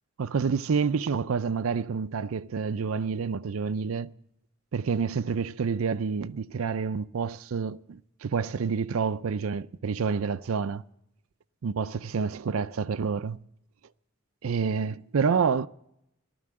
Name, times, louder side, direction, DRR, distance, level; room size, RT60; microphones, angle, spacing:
voice 1, 0.2-4.1 4.7-10.8 11.6-13.4 14.4-15.7, right 5 dB, 85° right, 0.5 m, -28 dB
15.0 x 12.5 x 7.5 m
head